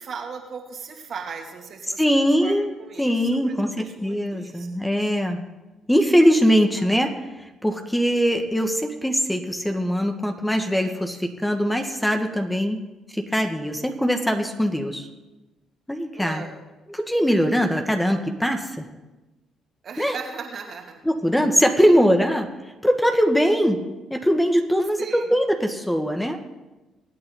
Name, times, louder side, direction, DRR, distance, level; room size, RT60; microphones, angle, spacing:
voice 1, 0.0-4.7 6.2-6.3 6.8-6.9 16.1-16.6 19.8-21.0 25.0-25.2, right 5 dB, 55° right, 2 dB, 2.7 m, -38 dB
voice 2, 2.0-2.7 3.0-5.4 5.9-7.1 7.4-12.8 13.1-15.1 15.9-16.4 16.9-18.9 20.0-20.2 21.0-22.5 22.8-23.8 24.1-26.4, equal, 5° left, 4 dB, 1.9 m, -21 dB
24.5 x 8.9 x 4.1 m, 1.1 s
hypercardioid pair, 55°, 0 cm